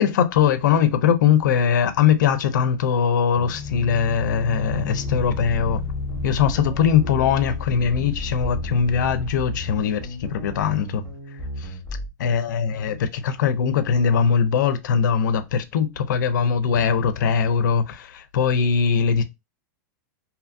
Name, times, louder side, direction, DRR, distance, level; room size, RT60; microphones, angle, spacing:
voice 1, 0.0-5.8 6.2-11.0 11.6-11.7 12.2-19.2, left 7 dB, 85° left, 0.5 m, -21 dB
sound 1, 3.3-10.5, left 6 dB, 25° left, 0.3 m, -33 dB
sound 2, 4.7-12.1, equal, 5° right, 1.0 m, -34 dB
2.7 x 2.5 x 2.5 m
supercardioid pair, 170°, 10 cm